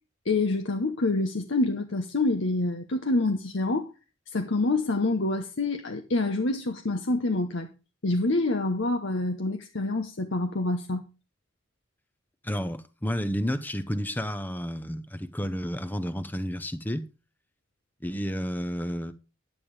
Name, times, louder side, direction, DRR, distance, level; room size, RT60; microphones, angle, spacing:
voice 1, 0.2-3.9 4.3-7.7 8.0-11.1, left 2 dB, 70° left, 1.0 m, -27 dB
voice 2, 12.4-17.1 18.0-19.1, equal, 10° left, 0.8 m, -31 dB
10.5 x 8.9 x 4.8 m
head